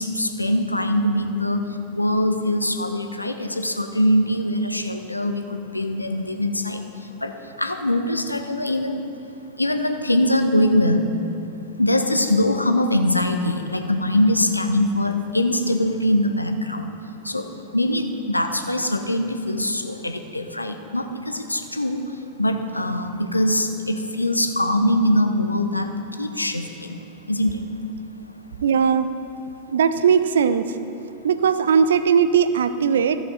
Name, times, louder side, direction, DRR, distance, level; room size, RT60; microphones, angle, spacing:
voice 1, 0.0-1.6 1.9-6.8 7.2-7.3 7.6-9.0 9.6-11.1 11.8-16.9 17.3-17.5 17.7-22.0 22.4-25.9 26.2-27.0 27.3-27.6, left 1 dB, 85° left, 7 dB, 0.6 m, -22 dB
voice 2, 28.6-29.1 29.7-30.7 31.2-33.2, right 7 dB, 65° right, 13 dB, 0.4 m, -18 dB
13.5 x 7.1 x 4.1 m, 2.7 s
figure-of-eight pair, 90°, 0 cm